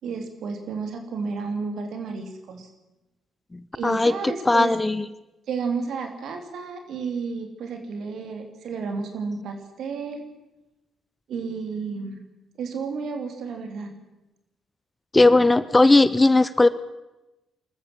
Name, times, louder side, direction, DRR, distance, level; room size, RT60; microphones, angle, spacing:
voice 1, 0.0-2.7 3.7-4.7 5.5-10.3 11.3-12.2 12.6-13.9, right 5 dB, 60° right, 5 dB, 3.2 m, -32 dB
voice 2, 3.5-5.1 15.1-16.7, left 2 dB, 20° left, 16 dB, 0.9 m, -18 dB
25.0 x 14.0 x 7.7 m, 1.0 s
hypercardioid pair, 45°, 0 cm